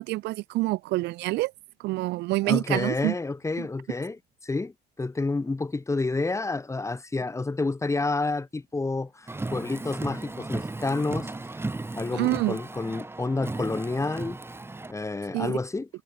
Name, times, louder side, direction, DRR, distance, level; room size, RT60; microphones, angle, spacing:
voice 1, 0.0-1.5 1.8-3.1 3.6-3.7 12.1-12.6 15.3-15.6, right 20 dB, 85° right, 2.1 m, -27 dB
voice 2, 2.4-11.3 11.9-14.4 14.9-15.9, left 3 dB, 15° left, 5.5 m, -29 dB
Car, 9.3-14.9, right 2 dB, 15° right, 5.3 m, -35 dB
cardioid pair, 110°, 17 cm